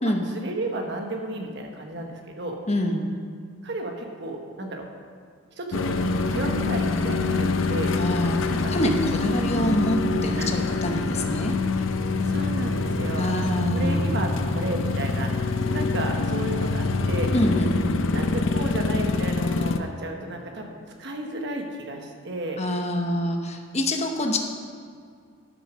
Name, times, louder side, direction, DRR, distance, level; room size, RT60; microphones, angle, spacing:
voice 1, 0.0-2.6 3.6-4.9 5.6-8.0 8.5-8.7 10.4-10.5 12.2-17.3 18.1-22.6, right 1 dB, 55° right, 2 dB, 1.4 m, -33 dB
voice 2, 2.7-3.1 8.0-8.4 8.7-11.5 13.2-14.1 17.3-17.8 22.6-24.4, left 1 dB, 30° left, 3 dB, 1.0 m, -26 dB
sound 1, 5.7-19.8, left 3 dB, 70° left, 0.6 m, -25 dB
12.0 x 6.6 x 6.2 m, 2.2 s
head